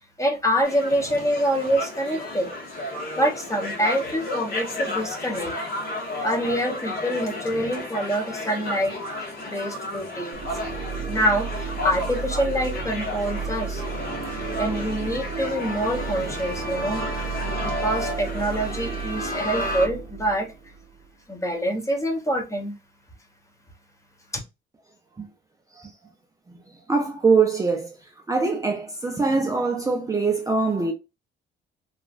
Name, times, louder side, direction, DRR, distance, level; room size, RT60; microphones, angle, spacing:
voice 1, 0.2-2.5 3.1-5.5 6.2-10.4 11.1-13.8 14.4-17.0 17.4-20.5 21.3-22.7, equal, 15° left, 0.9 m, -26 dB
sound 1, 0.6-19.9, left 1 dB, 50° left, 1.3 m, -32 dB
sound 2, 10.3-21.1, right 6 dB, 55° right, 0.7 m, -33 dB
voice 2, 26.9-27.9 28.3-30.9, right 4 dB, 15° right, 0.5 m, -23 dB
2.9 x 2.4 x 2.5 m
cardioid pair, 90°, 20 cm